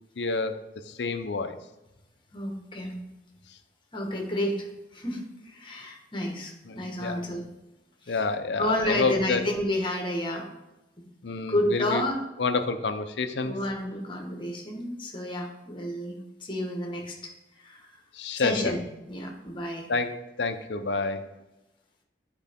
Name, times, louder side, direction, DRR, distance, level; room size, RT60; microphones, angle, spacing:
voice 1, 0.2-0.6 0.9-1.5 6.7-7.2 8.1-9.4 11.2-12.0 12.4-13.5 18.2-18.7 19.9-21.2, left 4 dB, 75° left, 8 dB, 0.7 m, -28 dB
voice 2, 2.3-3.0 3.9-4.7 4.9-7.4 8.0-8.2 8.6-10.5 11.0-11.1 11.5-12.2 13.4-18.0 18.4-18.8 19.1-19.9, left 1 dB, 30° left, 1 dB, 1.4 m, -30 dB
10.5 x 4.8 x 3.6 m, 0.96 s
head